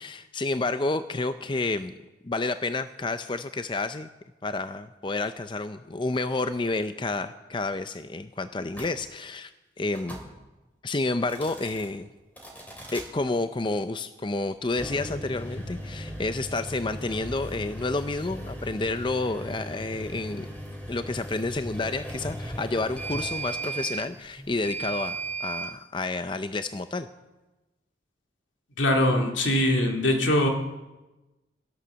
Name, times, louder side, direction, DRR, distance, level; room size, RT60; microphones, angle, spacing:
voice 1, 0.0-1.9 2.2-4.1 4.4-9.5 9.8-10.2 10.8-12.1 12.9-20.5 20.9-27.1, left 2 dB, 25° left, 10 dB, 0.5 m, -30 dB
sound 1, 8.7-8.9 9.9-10.3 11.2-11.9 12.4-13.1 14.7-25.7, right 2 dB, 10° left, 2.9 m, -37 dB
voice 2, 28.8-30.5, left 1 dB, 80° left, 2 dB, 2.4 m, -22 dB
16.5 x 11.5 x 6.9 m, 1.1 s
head